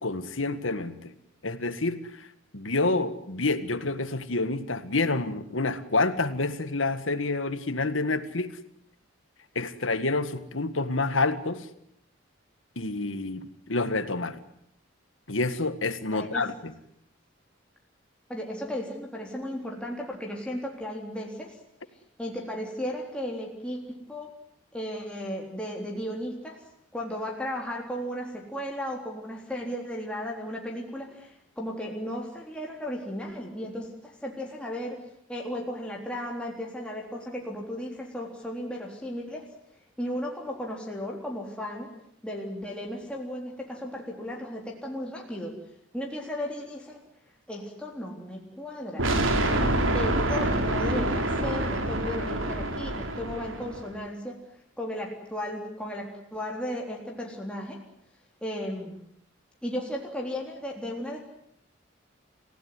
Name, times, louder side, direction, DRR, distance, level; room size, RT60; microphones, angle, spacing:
voice 1, 0.0-1.1 1.4-2.3 2.5-8.5 9.6-11.7 12.8-14.4 15.3-16.7, left 3 dB, 80° left, 12 dB, 1.9 m, -28 dB
voice 2, 16.1-16.4 18.3-21.6 22.2-24.3 24.7-26.6 26.9-35.0 35.3-39.5 40.0-41.9 42.2-45.6 45.9-47.0 47.5-49.1 49.9-54.4 54.8-57.8 58.4-59.0 59.6-61.2, equal, 5° left, -1 dB, 3.7 m, -35 dB
sound 1, 49.0-53.9, right 1 dB, 85° right, 3.7 m, -26 dB
29.0 x 16.5 x 9.8 m, 0.74 s
head